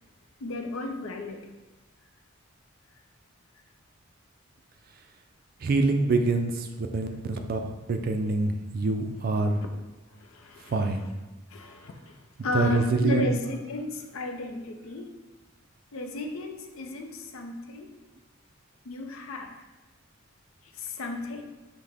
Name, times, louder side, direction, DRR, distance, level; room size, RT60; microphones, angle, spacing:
voice 1, 0.4-1.5 10.1-10.7 11.5-12.2 12.4-15.2 15.9-17.9 18.9-19.6 20.7-21.4, left 2 dB, 75° left, 4 dB, 0.5 m, -34 dB
voice 2, 5.6-9.6 10.7-11.1 12.5-13.3, right 3 dB, 45° right, 6 dB, 0.3 m, -26 dB
5.6 x 2.1 x 3.4 m, 1.1 s
head